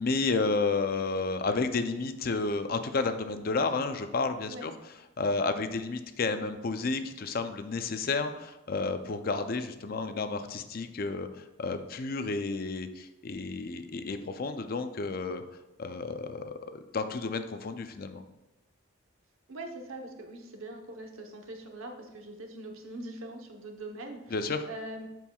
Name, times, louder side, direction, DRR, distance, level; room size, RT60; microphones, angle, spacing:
voice 1, 0.0-4.7 5.2-15.4 15.8-18.2 24.3-24.6, left 3 dB, 45° left, 9 dB, 0.4 m, -31 dB
voice 2, 19.5-24.3 24.7-25.1, right 1 dB, 85° right, 3 dB, 0.9 m, -42 dB
12.5 x 4.5 x 2.3 m, 0.99 s
head